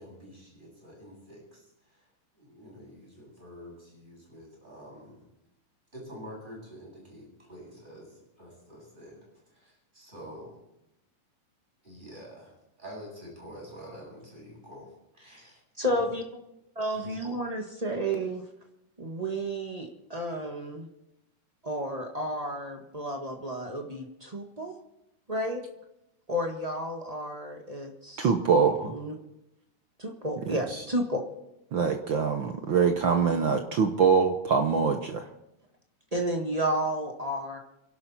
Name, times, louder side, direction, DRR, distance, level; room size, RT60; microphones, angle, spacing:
voice 1, 0.0-2.0 2.4-5.3 5.9-9.2 9.5-10.6 11.8-16.1 16.8-17.3 30.4-30.9, equal, 15° right, -3 dB, 8.2 m, -47 dB
voice 2, 15.8-16.2 16.7-18.4 19.0-20.9 21.6-24.7 25.3-25.6 26.3-28.3 28.9-29.1 30.0-31.2 36.1-37.6, right 1 dB, 55° right, 2 dB, 0.4 m, -31 dB
voice 3, 28.2-28.9 30.5-30.6 31.7-35.3, right 6 dB, 80° right, 5 dB, 1.0 m, -24 dB
28.5 x 12.0 x 4.3 m, 0.88 s
omnidirectional pair, 3.7 m